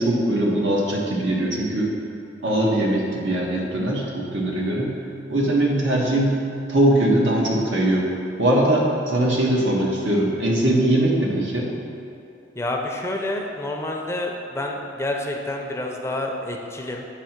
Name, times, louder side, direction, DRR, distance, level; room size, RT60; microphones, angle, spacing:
voice 1, 0.0-1.9 2.4-4.9 5.3-6.3 6.7-8.1 8.4-11.7, right 1 dB, 85° right, -3 dB, 1.3 m, -21 dB
voice 2, 12.5-17.0, left 1 dB, 15° left, 1 dB, 0.5 m, -28 dB
8.3 x 2.9 x 5.8 m, 2.8 s
head